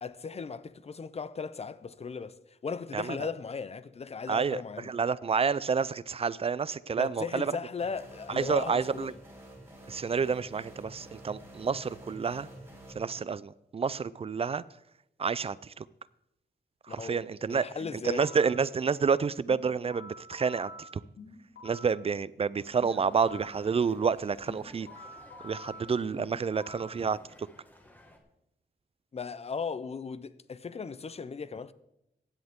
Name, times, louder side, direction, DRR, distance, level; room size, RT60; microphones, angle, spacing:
voice 1, 0.0-4.9 6.9-9.1 16.9-17.2 17.5-18.3 29.1-31.7, left 5 dB, 35° left, 0.6 m, -37 dB
voice 2, 4.3-4.6 4.8-7.5 8.3-9.1 9.9-12.5 13.0-14.6 15.2-15.8 16.9-17.7 18.0-20.7 21.6-24.9 25.4-27.2, right 5 dB, 35° right, 0.4 m, -29 dB
sound 1, 7.8-12.9, right 1 dB, 15° right, 3.6 m, -49 dB
sound 2, 17.8-18.6 19.5-22.0 22.8-23.6 24.5-27.0, left 2 dB, 85° left, 3.1 m, -47 dB
sound 3, 22.6-28.2, left 1 dB, 10° left, 1.8 m, -55 dB
15.5 x 10.5 x 3.6 m
wide cardioid pair, 125°, 18 cm